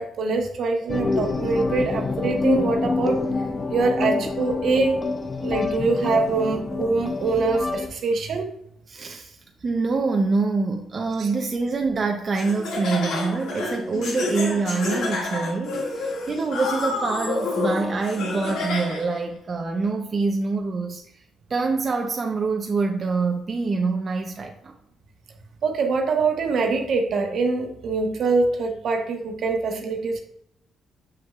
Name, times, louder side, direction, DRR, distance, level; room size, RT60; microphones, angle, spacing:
voice 1, 0.0-3.2 3.7-5.0 5.4-8.5 11.2-11.3 25.6-30.2, right 3 dB, 65° right, 4 dB, 1.1 m, -24 dB
sound 1, 0.9-7.9, left 3 dB, 25° left, 0.6 m, -26 dB
voice 2, 8.9-21.2 21.5-24.7, right 4 dB, 40° right, 2 dB, 0.7 m, -25 dB
Laughter, 12.3-19.2, left 3 dB, 80° left, 2.0 m, -29 dB
7.1 x 6.3 x 2.4 m, 0.75 s
cardioid pair, 90°, 0 cm